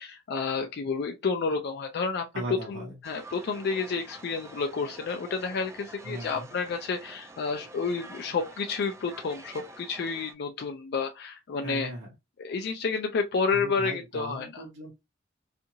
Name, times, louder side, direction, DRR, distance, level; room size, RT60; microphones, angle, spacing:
voice 1, 0.0-11.9 12.4-14.6, left 4 dB, 55° left, 0.4 m, -30 dB
voice 2, 2.3-3.0 6.0-6.5 11.6-12.1 13.5-14.9, right 1 dB, 75° right, 0.8 m, -38 dB
sound 1, 3.0-10.3, right 2 dB, 15° right, 0.3 m, -47 dB
2.7 x 2.5 x 2.7 m
head